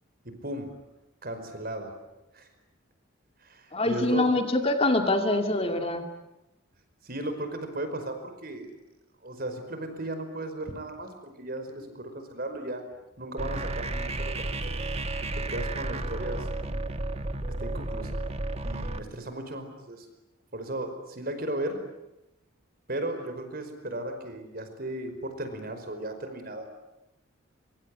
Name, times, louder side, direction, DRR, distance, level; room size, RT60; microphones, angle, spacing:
voice 1, 0.2-0.8 1.2-1.9 2.3-2.5 3.4-4.5 7.0-8.7 9.2-12.8 13.2-14.8 15.2-16.8 17.6-18.2 18.6-20.1 20.5-21.8 22.9-26.7, right 1 dB, 45° right, 8 dB, 5.1 m, -36 dB
voice 2, 3.7-6.1, left 2 dB, 30° left, 5 dB, 2.3 m, -25 dB
sound 1, 13.4-19.0, right 2 dB, 30° right, 1.4 m, -32 dB
25.0 x 24.5 x 9.8 m, 0.94 s
head